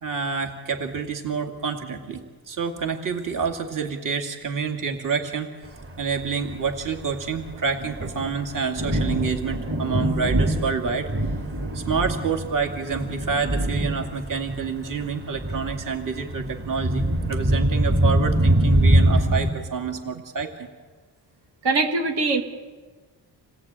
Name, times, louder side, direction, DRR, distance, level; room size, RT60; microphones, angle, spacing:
voice 1, 0.0-5.5 6.0-11.1 11.7-20.7, right 5 dB, 50° right, 3 dB, 2.3 m, -28 dB
Thunder, 5.8-19.5, right 1 dB, 35° right, 2.7 m, -24 dB
voice 2, 21.6-22.4, right 3 dB, 75° right, 3 dB, 2.4 m, -22 dB
28.0 x 18.0 x 8.9 m, 1.4 s
wide cardioid pair, 140°, 40 cm